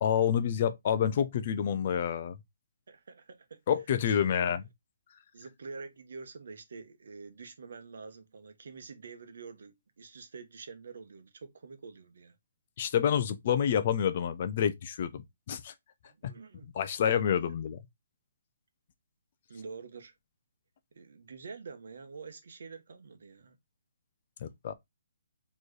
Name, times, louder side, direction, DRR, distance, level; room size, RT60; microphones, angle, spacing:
voice 1, 0.0-2.4 3.7-4.6 12.8-15.7 16.2-16.3 16.7-17.8 24.4-24.7, left 8 dB, 30° left, 0.4 m, -28 dB
voice 2, 2.9-3.6 4.0-4.6 5.3-12.3 16.0-16.7 17.4-17.6 19.5-20.1 20.9-23.6, right 4 dB, 60° right, 0.9 m, -47 dB
4.4 x 3.0 x 3.1 m
hypercardioid pair, 175°, 0 cm